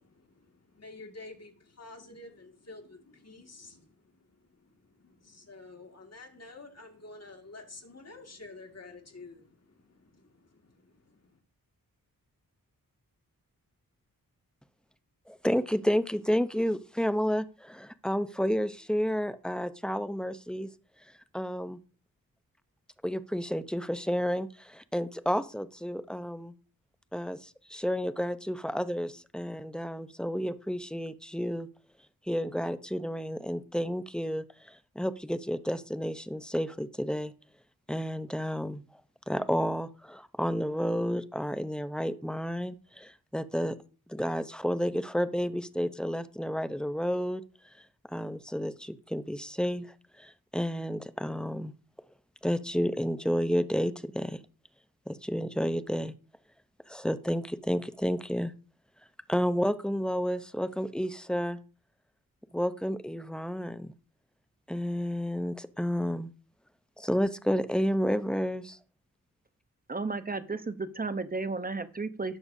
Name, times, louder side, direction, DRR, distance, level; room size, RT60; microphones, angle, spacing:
voice 1, 0.0-11.4, left 3 dB, 45° left, 4 dB, 2.2 m, -50 dB
voice 2, 15.3-20.7 21.3-21.8 23.0-26.5 27.1-31.7 32.3-37.3 37.9-38.8 39.3-43.8 44.1-47.4 48.1-49.9 50.2-51.7 52.4-54.4 55.1-56.1 56.9-58.5 59.3-61.6 62.5-63.9 64.7-66.3 67.0-68.8, equal, ahead, 12 dB, 0.7 m, -31 dB
voice 3, 69.9-72.4, right 3 dB, 25° right, 11 dB, 0.9 m, -33 dB
17.0 x 6.8 x 2.7 m, 0.39 s
cardioid pair, 60°, 35 cm